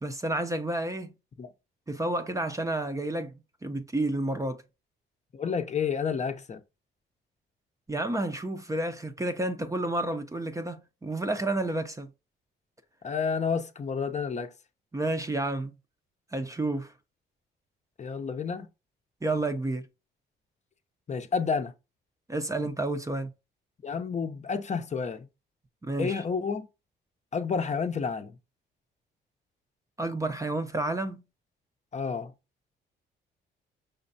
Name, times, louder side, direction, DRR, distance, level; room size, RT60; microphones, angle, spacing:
voice 1, 0.0-1.1 1.9-3.3 3.6-4.6 7.9-12.1 14.9-15.8 16.3-16.9 19.2-19.8 22.3-23.3 25.8-26.2 30.0-31.2, right 2 dB, 15° right, 0.6 m, -30 dB
voice 2, 5.3-6.6 13.0-14.5 18.0-18.7 21.1-21.7 23.8-25.3 26.0-26.7 27.3-28.3 31.9-32.3, left 5 dB, 35° left, 0.7 m, -30 dB
5.3 x 3.1 x 2.7 m
cardioid pair, 90°, 20 cm